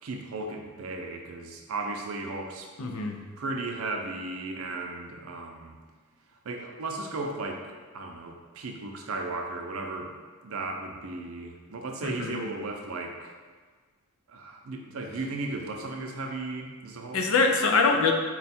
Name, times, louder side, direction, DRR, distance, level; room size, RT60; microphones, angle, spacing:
voice 1, 0.0-2.7 3.4-5.8 6.4-7.7 7.9-10.1 10.4-13.3 14.3-17.2, right 2 dB, 80° right, 2 dB, 0.5 m, -35 dB
voice 2, 2.8-3.2 12.0-12.4 17.1-18.1, left 4 dB, 80° left, 4 dB, 0.5 m, -24 dB
4.2 x 2.3 x 4.2 m, 1.5 s
head